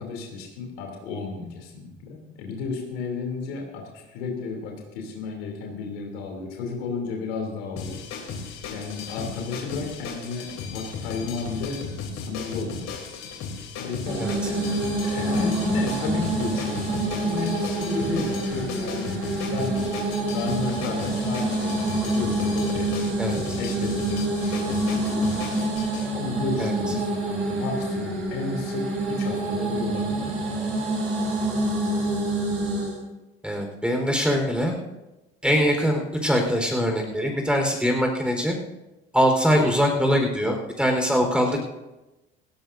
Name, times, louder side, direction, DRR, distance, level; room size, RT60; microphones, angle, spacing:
voice 1, 0.0-8.0 8.7-11.8 12.1-12.9 13.8-19.8 20.3-25.6 26.1-30.3, left 4 dB, 80° left, 1 dB, 3.2 m, -33 dB
sound 1, 7.8-26.1, left 5 dB, 60° left, 3.4 m, -36 dB
sound 2, 14.0-33.0, right 1 dB, 85° right, 5.0 m, -27 dB
voice 2, 33.4-34.7 35.4-38.6 39.1-41.6, equal, 5° right, 2 dB, 4.4 m, -22 dB
18.0 x 17.0 x 2.7 m, 1.0 s
hypercardioid pair, 65°, 30 cm